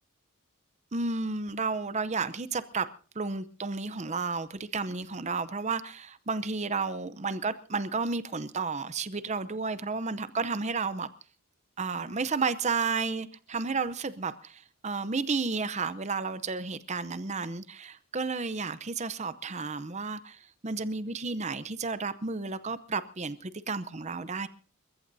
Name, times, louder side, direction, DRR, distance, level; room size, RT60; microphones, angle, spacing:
voice 1, 0.9-2.9 3.1-11.1 11.8-24.5, right 4 dB, 30° right, 0.7 m, -32 dB
29.0 x 15.0 x 2.7 m
head